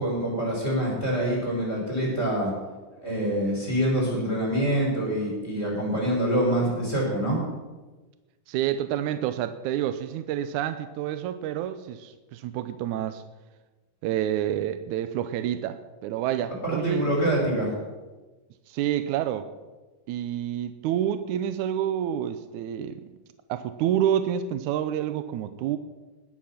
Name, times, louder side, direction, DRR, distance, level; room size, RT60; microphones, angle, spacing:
voice 1, 0.0-2.5 3.0-7.4 16.6-17.7, right 1 dB, 15° left, -2 dB, 5.5 m, -25 dB
voice 2, 8.5-13.2 14.0-17.5 18.7-19.5 20.1-23.1 23.5-25.8, right 10 dB, 80° right, 10 dB, 1.8 m, -28 dB
20.0 x 8.8 x 5.8 m, 1.2 s
omnidirectional pair, 4.0 m